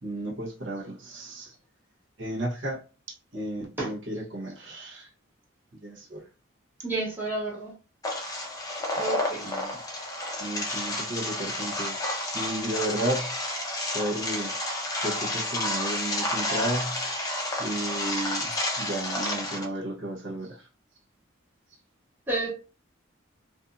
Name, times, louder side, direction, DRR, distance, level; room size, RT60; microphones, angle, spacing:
voice 1, 0.0-1.6 2.2-2.8 3.1-5.1 5.8-6.2 9.4-9.8 10.4-12.0 12.3-13.3 13.9-14.5 15.0-17.2 17.6-20.7, right 1 dB, 65° right, 1.0 m, -33 dB
voice 2, 6.8-7.7 8.9-9.5 22.3-22.5, right 2 dB, 10° right, 1.0 m, -30 dB
sound 1, 8.0-19.6, left 1 dB, 20° left, 0.6 m, -30 dB
2.6 x 2.5 x 2.5 m
head